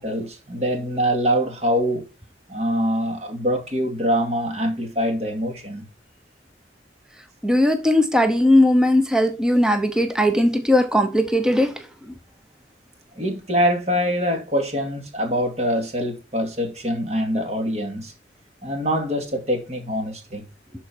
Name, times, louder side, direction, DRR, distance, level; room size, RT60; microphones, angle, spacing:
voice 1, 0.0-2.1 2.5-5.9 13.2-18.1 18.6-20.4, equal, 35° right, 2.2 m, -24 dB
voice 2, 7.4-11.7, left 1 dB, 5° right, 0.8 m, -18 dB
11.5 x 4.6 x 4.5 m
head